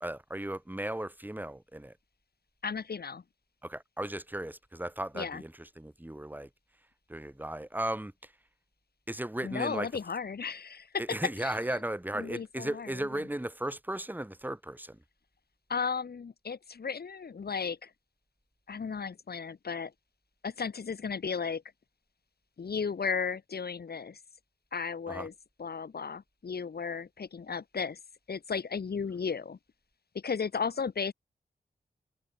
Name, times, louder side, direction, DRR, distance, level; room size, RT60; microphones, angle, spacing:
voice 1, 0.0-1.9 3.6-6.5 7.1-8.3 9.1-9.9 11.0-15.0 25.1-25.3, right 1 dB, 10° right, 1.9 m, -36 dB
voice 2, 2.6-3.2 5.1-5.4 9.4-11.8 12.1-13.3 15.7-17.9 18.7-19.9 20.4-21.6 22.6-24.2 24.7-25.3 25.6-28.0 28.3-29.6 30.1-31.1, left 5 dB, 80° left, 4.4 m, -35 dB
cardioid pair, 55°, 16 cm